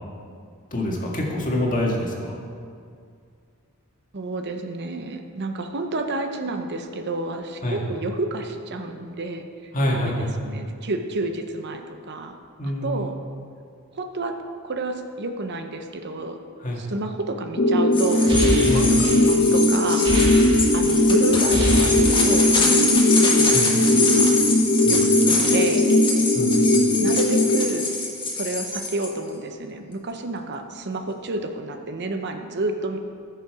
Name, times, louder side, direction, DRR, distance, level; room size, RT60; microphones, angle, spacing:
voice 1, 0.7-2.3 7.6-7.8 9.7-10.4 12.6-13.1 16.6-16.8 18.7-18.9 23.5-23.7 24.8-25.0 26.3-26.6, left 1 dB, 40° left, -2 dB, 1.9 m, -26 dB
voice 2, 4.1-10.1 10.4-12.4 12.6-13.2 13.9-14.3 14.6-16.4 16.8-20.4 20.7-24.4 24.9-25.0 25.3-25.9 27.0-27.9 28.3-33.0, right 2 dB, 50° right, 6 dB, 0.7 m, -30 dB
sound 1, 17.6-27.6, left 1 dB, 60° left, 0.8 m, -19 dB
sound 2, 17.9-29.1, left 3 dB, 20° left, 1.4 m, -25 dB
sound 3, 18.0-21.0 21.3-22.6, equal, 25° right, 1.9 m, -27 dB
15.0 x 6.8 x 4.8 m, 2.2 s
head